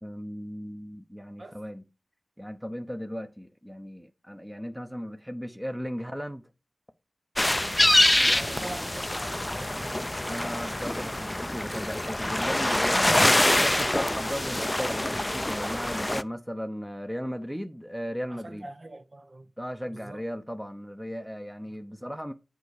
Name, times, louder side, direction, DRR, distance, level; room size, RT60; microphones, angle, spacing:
voice 1, 0.0-1.8 2.4-6.4 10.3-18.7 19.6-22.3, equal, 5° right, 0.9 m, -36 dB
sound 1, 7.4-16.2, left 1 dB, 20° left, 0.4 m, -25 dB
voice 2, 8.3-10.5 18.3-19.5 19.9-20.2 21.7-21.8, right 2 dB, 45° right, 0.9 m, -43 dB
8.1 x 4.7 x 4.9 m
cardioid pair, 50°, 0 cm